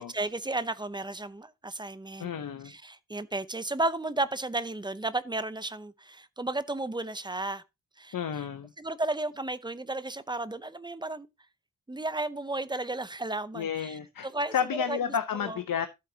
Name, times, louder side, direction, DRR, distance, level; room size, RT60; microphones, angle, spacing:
voice 1, 0.0-2.3 2.6-7.6 8.0-8.1 8.8-11.3 11.9-15.0 15.4-15.6, right 2 dB, 15° right, 0.6 m, -33 dB
voice 2, 2.2-2.7 8.1-8.7 13.5-15.9, left 8 dB, 85° left, 0.8 m, -31 dB
13.0 x 7.8 x 2.8 m
wide cardioid pair, 165°, 33 cm